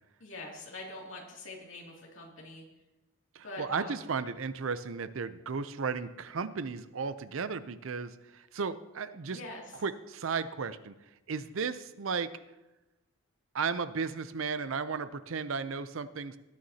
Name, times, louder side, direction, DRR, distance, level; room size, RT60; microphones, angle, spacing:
voice 1, 0.2-2.6 3.4-4.0 9.3-9.6, left 2 dB, 65° left, -1 dB, 2.6 m, -44 dB
voice 2, 3.3-9.4 9.8-10.9 11.3-12.3 13.5-16.4, right 5 dB, 65° right, 13 dB, 0.6 m, -34 dB
18.5 x 9.3 x 2.8 m, 1.0 s
head